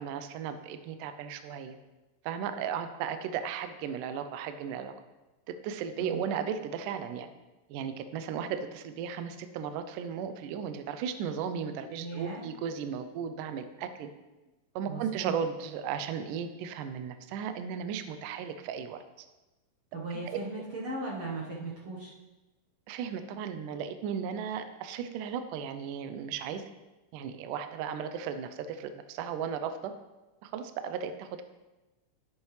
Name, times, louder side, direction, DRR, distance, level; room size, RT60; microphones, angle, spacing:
voice 1, 0.0-1.7 2.2-4.9 5.5-7.3 7.7-14.1 14.7-19.3 20.3-20.4 22.9-26.6 27.1-29.9 30.4-31.4, right 7 dB, 90° right, 9 dB, 1.8 m, -35 dB
voice 2, 12.0-12.4 14.9-15.4 19.9-22.1, right 2 dB, 60° right, -5 dB, 1.5 m, -37 dB
10.5 x 8.4 x 3.2 m, 1.1 s
omnidirectional pair, 4.5 m